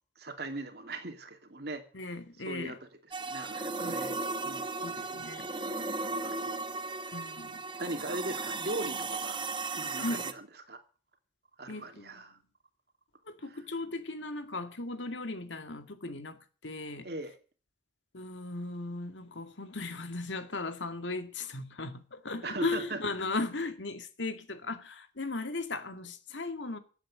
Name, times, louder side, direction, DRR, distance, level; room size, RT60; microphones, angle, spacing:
voice 1, 0.2-1.8 2.5-2.8 3.2-4.1 4.4-4.7 5.1-5.2 6.2-6.7 7.1-7.2 7.8-9.4 9.7-10.8 11.6-12.4 17.0-17.3 22.4-23.0, right 2 dB, 60° right, 2.6 m, -39 dB
voice 2, 1.9-2.8 3.8-4.0 4.8-5.5 7.1-7.6 10.0-10.3 11.7-12.3 13.3-17.1 18.1-26.8, left 2 dB, 85° left, 2.1 m, -37 dB
sound 1, 3.1-10.3, right 3 dB, 25° right, 1.1 m, -36 dB
14.5 x 8.9 x 9.1 m
head